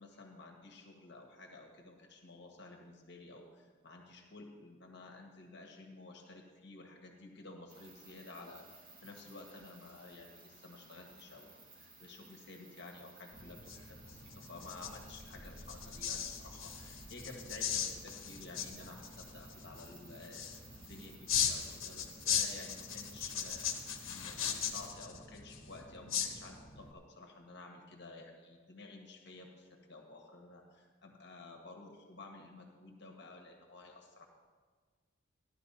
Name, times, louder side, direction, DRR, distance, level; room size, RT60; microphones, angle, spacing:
voice 1, 0.0-23.6 24.0-34.2, left 2 dB, 60° left, 1 dB, 1.8 m, -52 dB
sound 1, 7.7-24.9, right 3 dB, 45° right, 3.1 m, -58 dB
sound 2, 13.3-26.9, left 8 dB, 90° left, 1.4 m, -39 dB
sound 3, 14.7-20.7, equal, 20° left, 0.9 m, -59 dB
15.0 x 11.5 x 4.2 m, 1.5 s
head